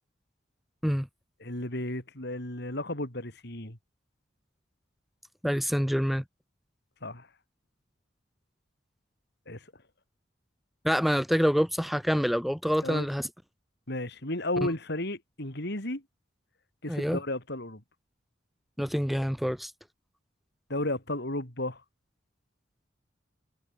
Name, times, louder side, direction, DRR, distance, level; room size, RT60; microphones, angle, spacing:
voice 1, 1.4-3.8 7.0-7.3 9.5-9.6 12.8-13.1 13.9-16.0 16.8-17.8 20.7-21.8, left 1 dB, 60° left, 5.5 m, -33 dB
voice 2, 5.4-6.2 10.8-13.3 16.9-17.2 18.8-19.7, equal, ahead, 6.1 m, -26 dB
head